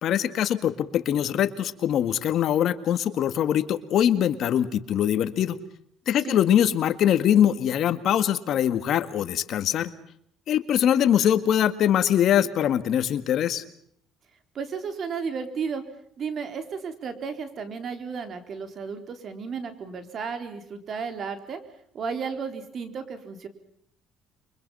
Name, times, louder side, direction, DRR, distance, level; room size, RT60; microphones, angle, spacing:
voice 1, 0.0-5.6 6.1-9.9 10.5-13.6, left 10 dB, 60° left, 11 dB, 1.8 m, -23 dB
voice 2, 14.5-15.8 16.2-21.6 21.9-23.5, right 5 dB, 45° right, 8 dB, 3.8 m, -33 dB
29.5 x 24.0 x 5.6 m, 0.67 s
cardioid pair, 110°, 0 cm